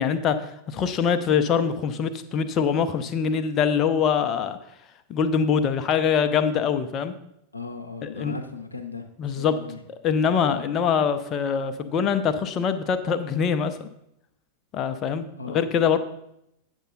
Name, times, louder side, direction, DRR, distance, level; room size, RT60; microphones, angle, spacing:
voice 1, 0.0-4.6 5.1-7.1 8.0-8.3 9.2-9.6 10.0-13.9 14.7-16.0, left 7 dB, 30° left, 9 dB, 0.6 m, -24 dB
voice 2, 7.5-9.8 10.5-10.7 15.4-15.6, left 4 dB, 85° left, 5 dB, 0.7 m, -37 dB
9.0 x 6.7 x 3.9 m, 0.78 s
figure-of-eight pair, 90°, 0 cm